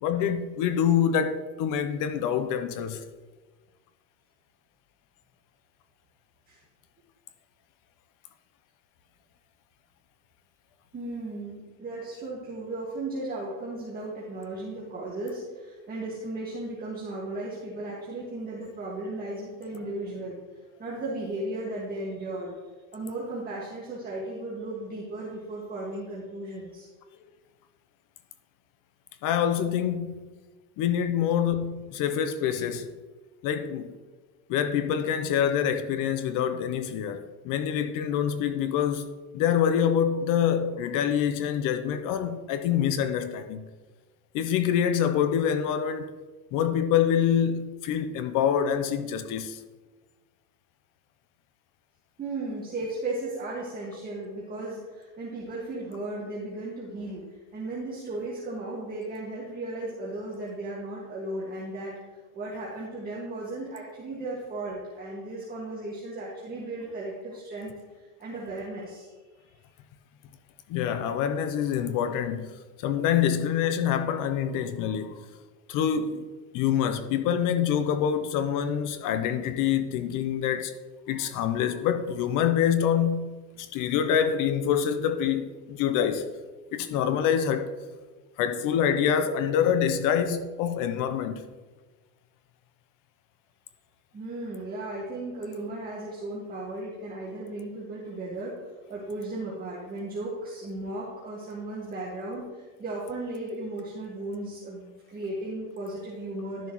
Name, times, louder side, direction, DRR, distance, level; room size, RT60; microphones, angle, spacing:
voice 1, 0.0-3.0 29.2-30.2 30.8-32.9 33.4-34.0 34.5-39.1 39.3-43.6 44.3-46.1 46.5-49.6 70.7-75.3 75.7-76.2 76.5-80.7 81.1-86.2 86.7-87.7 88.4-91.4, left 8 dB, 45° left, 0.7 m, -26 dB
voice 2, 10.9-20.4 20.8-22.5 22.9-26.9 52.2-57.2 57.5-62.0 62.3-69.1 94.1-98.5 98.9-106.7, right 2 dB, 20° right, 1.9 m, -35 dB
12.0 x 7.0 x 3.1 m
supercardioid pair, 125°, 46 cm